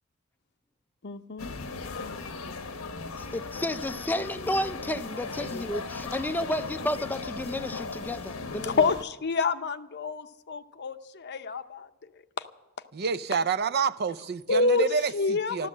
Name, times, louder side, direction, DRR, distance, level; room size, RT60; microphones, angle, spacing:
voice 1, 1.0-1.5 5.4-5.7 8.8-11.9 14.5-14.9 15.1-15.7, left 3 dB, 50° left, 0.7 m, -27 dB
sound 1, 1.4-9.0, left 4 dB, 75° left, 1.0 m, -37 dB
voice 2, 3.2-8.9, left 1 dB, 10° left, 0.5 m, -32 dB
voice 3, 12.9-15.7, right 6 dB, 50° right, 0.5 m, -28 dB
13.5 x 13.0 x 7.4 m
head